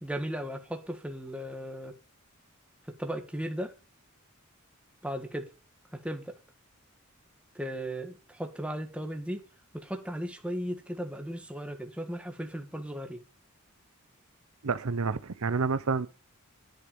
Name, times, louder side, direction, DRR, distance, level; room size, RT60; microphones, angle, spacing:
voice 1, 0.0-2.0 2.9-3.7 5.0-5.5 5.9-6.4 7.5-9.4 9.7-13.2, equal, 5° right, 1.6 m, -36 dB
voice 2, 14.6-16.1, right 4 dB, 75° right, 0.7 m, -29 dB
10.5 x 8.0 x 5.2 m
head